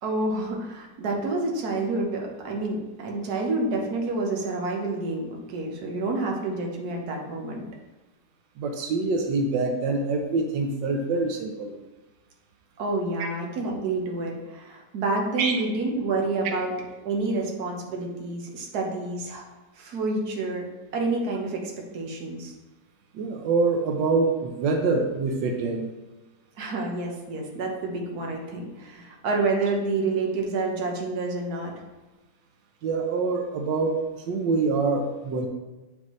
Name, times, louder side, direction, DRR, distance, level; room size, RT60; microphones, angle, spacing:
voice 1, 0.0-7.7 12.8-16.7 17.0-19.5 19.7-20.7 20.9-22.5 26.6-31.7, right 3 dB, 60° right, 0 dB, 1.6 m, -28 dB
voice 2, 8.6-11.7 15.4-15.5 23.1-25.9 32.8-34.0 34.3-35.5, right 3 dB, 90° right, 3 dB, 1.4 m, -25 dB
7.3 x 5.4 x 3.1 m, 1.2 s
omnidirectional pair, 1.9 m